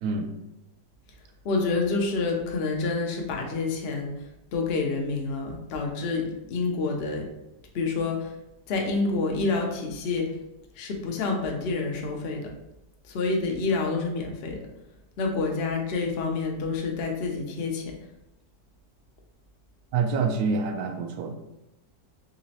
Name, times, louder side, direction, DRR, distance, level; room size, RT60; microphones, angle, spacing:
voice 1, 0.0-0.3 19.9-21.4, right 4 dB, 70° right, 4 dB, 1.0 m, -26 dB
voice 2, 1.4-4.1 4.5-7.2 7.7-8.3 8.7-10.3 10.8-12.5 13.1-14.6 15.2-17.9, left 3 dB, 65° left, 1 dB, 0.6 m, -28 dB
4.0 x 3.0 x 2.8 m, 0.93 s
omnidirectional pair, 1.8 m